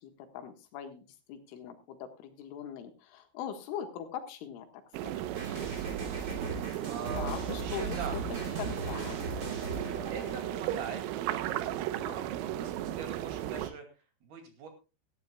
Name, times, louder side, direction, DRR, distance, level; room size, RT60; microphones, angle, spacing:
voice 1, 0.0-4.7 5.0-5.4 7.2-8.2 8.6-9.2, left 9 dB, 75° left, 7 dB, 4.0 m, -41 dB
sound 1, 4.9-13.7, right 12 dB, 90° right, 3.5 m, -35 dB
sound 2, 5.3-10.6, right 1 dB, 30° right, 2.0 m, -39 dB
voice 2, 6.8-8.2 10.1-13.9 14.2-14.7, right 6 dB, 55° right, 5 dB, 4.0 m, -43 dB
17.0 x 14.0 x 2.3 m, 0.29 s
omnidirectional pair, 5.7 m